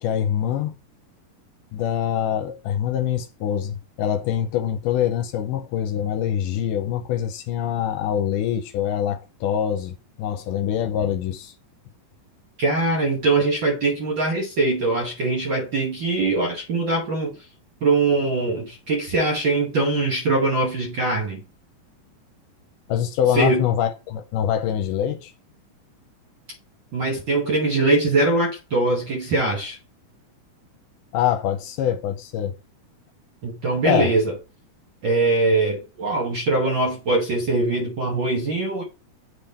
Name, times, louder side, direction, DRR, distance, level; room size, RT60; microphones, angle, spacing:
voice 1, 0.0-0.7 1.7-11.5 22.9-25.3 31.1-32.5 33.8-34.1, left 10 dB, 80° left, 2.1 m, -24 dB
voice 2, 12.6-17.3 17.8-21.4 23.3-23.6 26.9-29.8 33.4-34.3 35.0-38.8, right 2 dB, 75° right, 1.0 m, -22 dB
7.9 x 3.6 x 4.2 m
omnidirectional pair, 3.8 m